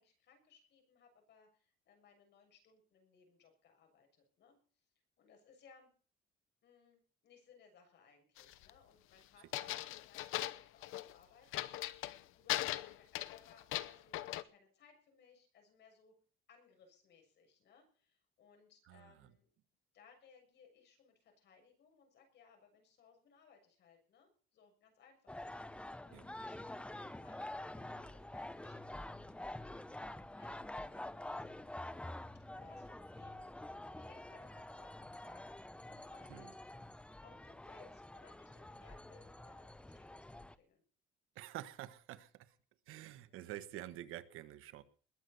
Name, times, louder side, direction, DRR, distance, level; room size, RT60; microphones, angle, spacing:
voice 1, 0.0-4.9 5.2-5.9 6.6-16.1 16.5-19.5 19.9-29.2 29.9-31.5 32.5-36.5 37.2-40.8, left 6 dB, 55° left, 4 dB, 6.9 m, -66 dB
sound 1, 8.4-8.7 9.5-11.1 11.5-12.2 12.5-14.4, left 15 dB, 80° left, 0.9 m, -39 dB
voice 2, 18.9-19.3 26.1-26.2 36.3-36.5 41.3-42.5 42.9-44.8, right 14 dB, 80° right, 13 dB, 1.3 m, -48 dB
sound 2, 25.3-40.6, left 1 dB, 5° left, 0.7 m, -47 dB
21.0 x 7.9 x 6.9 m, 0.43 s
cardioid pair, 140°, 21 cm